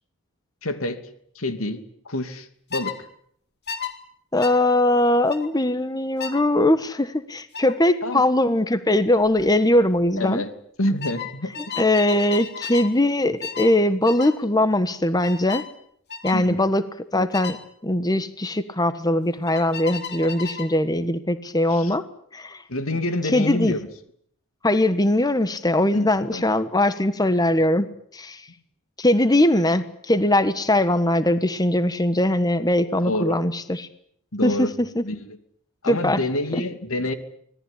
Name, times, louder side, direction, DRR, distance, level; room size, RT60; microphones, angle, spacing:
voice 1, 0.6-1.0 1.3-3.0 8.0-8.2 10.2-10.5 10.8-11.5 16.3-16.7 21.7-21.9 22.7-23.9 25.9-26.4 33.0-33.4 34.3-34.7 35.0-35.4 35.8-37.1, left 1 dB, 90° left, 2.7 m, -27 dB
sound 1, 2.7-3.0 3.7-3.9 4.4-4.6 5.3-5.5 6.2-6.4 7.5-7.7 9.2-9.4 9.7-10.1 11.0-12.9 13.4-13.8 14.1-14.4 15.2-15.7 16.1-16.4 17.3-17.6 19.5-20.7, left 7 dB, 50° left, 3.0 m, -34 dB
voice 2, 4.3-10.4 11.8-15.6 16.2-16.8 17.1-22.0 22.3-22.6 23.3-23.8 24.6-28.4 29.0-33.9 34.4-35.0 35.9-36.2 36.5-36.6, left 1 dB, 20° left, 1.3 m, -21 dB
25.5 x 18.5 x 10.0 m
head